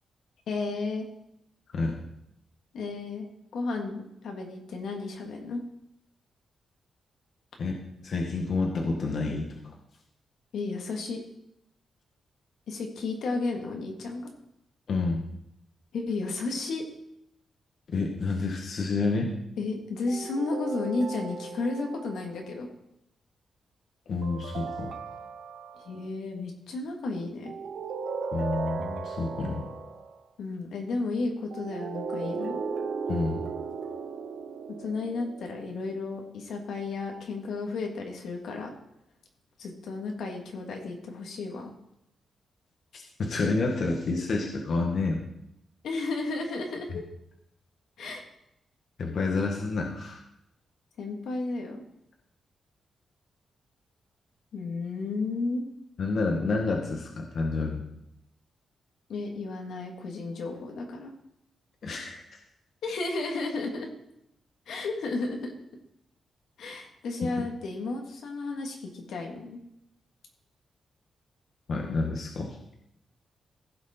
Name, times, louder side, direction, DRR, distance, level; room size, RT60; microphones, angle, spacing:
voice 1, 0.5-1.1 2.7-3.3 3.5-5.6 10.5-11.2 12.7-14.3 15.9-16.8 19.6-22.7 25.9-27.5 30.4-32.7 34.8-38.7 39.6-41.7 45.8-47.0 48.0-48.2 51.0-51.8 54.5-55.6 59.1-61.1 62.8-63.9 64.7-65.5 66.6-69.6, left 3 dB, 80° left, 2 dB, 1.9 m, -33 dB
voice 2, 8.0-9.5 14.9-15.2 17.9-19.3 24.1-24.9 28.3-29.7 33.1-33.4 42.9-45.2 49.0-50.2 56.0-57.9 61.8-62.2 71.7-72.6, left 3 dB, 50° left, 1 dB, 1.4 m, -29 dB
sound 1, 20.1-22.5 24.2-26.1 27.4-30.2 31.5-36.0, right 5 dB, 65° right, 0.9 m, -36 dB
15.5 x 6.2 x 4.3 m, 0.81 s
wide cardioid pair, 160°, 0 cm